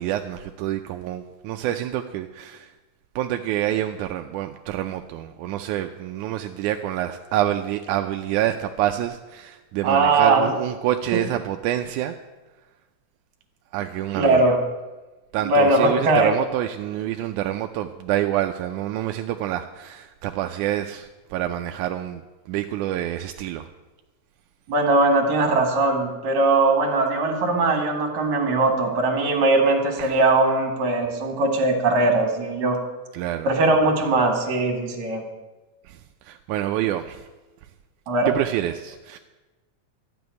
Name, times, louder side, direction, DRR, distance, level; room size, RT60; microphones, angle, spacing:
voice 1, 0.0-2.7 3.2-12.2 13.7-14.4 15.3-22.2 22.5-23.7 30.0-30.2 33.1-33.5 35.9-37.3 38.3-39.2, right 12 dB, 80° right, 6 dB, 1.9 m, -27 dB
voice 2, 9.8-10.5 11.1-11.2 14.2-14.6 15.4-16.3 24.7-32.8 33.4-35.2 38.1-38.3, right 2 dB, 65° right, 3 dB, 3.0 m, -20 dB
12.5 x 6.9 x 9.4 m, 1.2 s
omnidirectional pair, 3.8 m